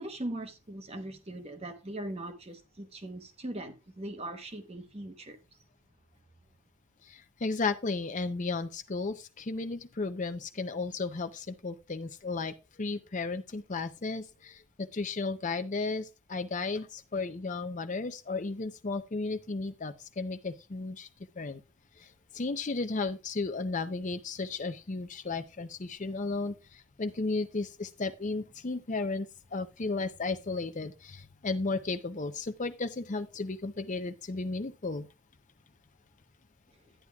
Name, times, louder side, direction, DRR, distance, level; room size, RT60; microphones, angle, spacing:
voice 1, 0.0-5.4, right 1 dB, 30° right, 1.0 m, -40 dB
voice 2, 7.0-21.1 21.4-21.6 22.0-35.1, left 3 dB, 35° left, 0.6 m, -34 dB
11.0 x 9.7 x 2.3 m
head